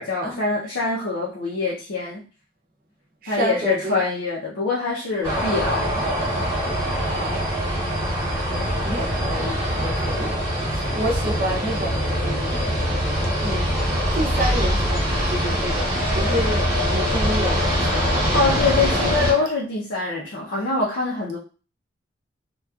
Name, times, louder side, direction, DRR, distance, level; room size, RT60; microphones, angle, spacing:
voice 1, 0.0-2.2 3.3-6.0 8.5-8.8 18.3-21.4, left 3 dB, 80° left, -6 dB, 0.6 m, -24 dB
voice 2, 3.2-4.0 7.1-7.6 8.8-10.3 10.7-12.7 13.4-13.7 14.1-18.4 18.8-19.5, right 1 dB, 50° right, 0 dB, 0.6 m, -29 dB
sound 1, 5.2-19.3, equal, 20° right, 0.9 m, -23 dB
2.9 x 2.3 x 2.3 m, 0.36 s
head